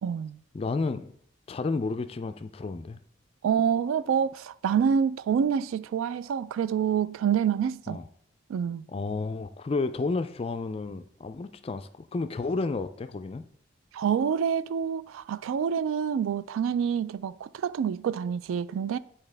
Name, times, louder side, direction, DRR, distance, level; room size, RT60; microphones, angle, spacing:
voice 1, 0.0-0.4 3.4-8.0 8.5-8.9 13.9-19.0, right 7 dB, 90° right, 0.3 m, -27 dB
voice 2, 0.5-1.1 1.5-3.0 7.9-8.1 8.9-13.4, left 3 dB, 30° left, 0.3 m, -31 dB
9.5 x 4.3 x 3.3 m
head